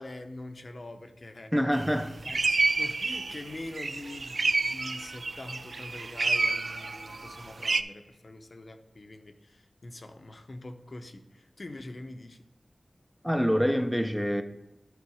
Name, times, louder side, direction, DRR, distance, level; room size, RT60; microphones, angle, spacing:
voice 1, 0.0-1.5 2.2-12.4, left 2 dB, 55° left, 6 dB, 0.7 m, -44 dB
voice 2, 1.5-2.1 13.2-14.4, equal, ahead, 7 dB, 0.5 m, -26 dB
sound 1, 1.7-1.9 2.2-7.8, right 3 dB, 70° right, 0.3 m, -29 dB
9.8 x 3.9 x 4.8 m, 0.97 s
wide cardioid pair, 70°, 0 cm